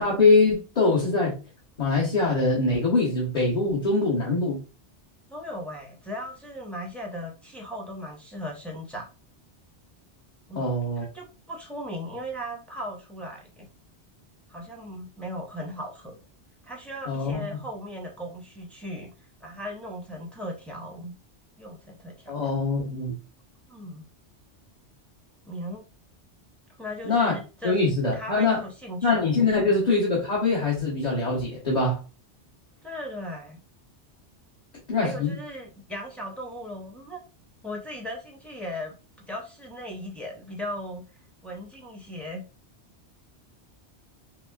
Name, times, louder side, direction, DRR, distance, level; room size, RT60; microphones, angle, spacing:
voice 1, 0.0-1.4 1.8-4.6 10.5-11.1 17.1-17.5 22.3-23.1 27.0-27.3 27.6-28.6 29.0-32.0 34.9-35.3, left 3 dB, 40° left, 1.2 m, -23 dB
voice 2, 5.3-9.0 10.5-13.7 14.5-16.2 16.6-19.1 19.4-21.1 21.6-22.3 23.7-24.0 25.5-25.8 26.8-27.9 28.1-29.2 29.5-29.8 32.8-33.6 35.0-37.2 37.6-38.9 39.3-41.0 41.4-42.4, equal, ahead, 0.8 m, -37 dB
5.6 x 2.1 x 2.3 m
omnidirectional pair, 1.2 m